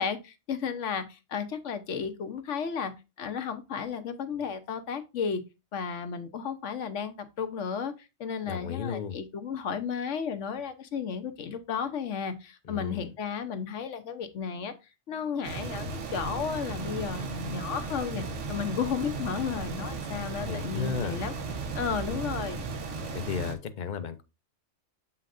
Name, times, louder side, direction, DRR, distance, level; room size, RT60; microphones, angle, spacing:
voice 1, 0.0-2.9 3.2-5.4 5.7-7.9 8.2-14.7 15.1-21.3 21.8-22.6, left 6 dB, 75° left, 1.1 m, -33 dB
voice 2, 8.5-9.2 12.7-13.1 20.4-21.2 23.1-24.2, left 6 dB, 45° left, 0.7 m, -34 dB
sound 1, 15.4-23.5, right 4 dB, 75° right, 1.3 m, -35 dB
7.4 x 5.6 x 2.5 m
omnidirectional pair, 1.3 m